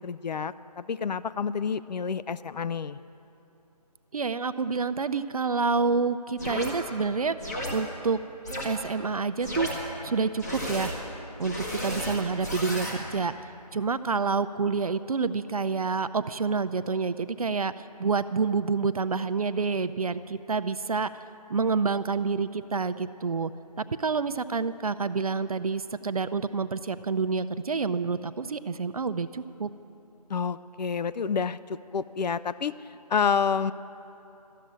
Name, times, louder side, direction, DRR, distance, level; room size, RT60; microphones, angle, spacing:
voice 1, 0.0-3.0 30.3-32.7 33.1-33.7, left 6 dB, 90° left, 15 dB, 0.4 m, -29 dB
voice 2, 4.1-7.4 7.7-8.2 8.6-9.7 10.0-10.9 11.4-13.3 13.7-17.7 18.0-21.1 21.5-23.5 24.0-29.7, right 4 dB, 60° right, 12 dB, 0.4 m, -28 dB
sound 1, 6.4-6.7 7.4-7.7 8.4-8.6 9.4-9.7 10.4-10.9 11.4-12.9, equal, 25° left, 1.5 m, -33 dB
13.5 x 7.5 x 9.9 m, 2.8 s
figure-of-eight pair, 175°, 21 cm